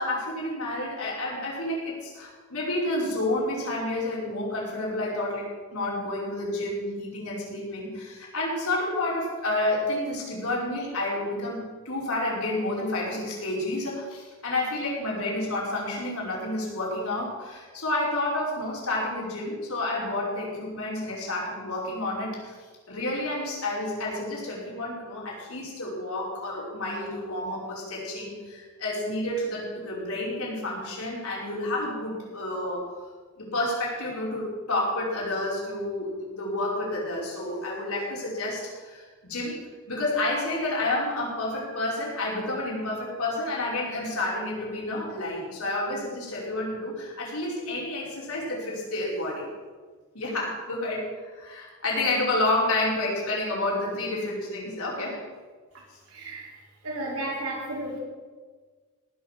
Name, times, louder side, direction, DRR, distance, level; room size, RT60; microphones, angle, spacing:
voice 1, 0.0-22.5 22.9-32.9 33.4-39.6 39.9-49.5 50.1-55.2, left 2 dB, 80° left, -4 dB, 5.3 m, -30 dB
voice 2, 56.1-56.6 56.8-58.0, right 1 dB, 85° right, -3 dB, 4.5 m, -33 dB
18.5 x 6.4 x 7.4 m, 1.5 s
head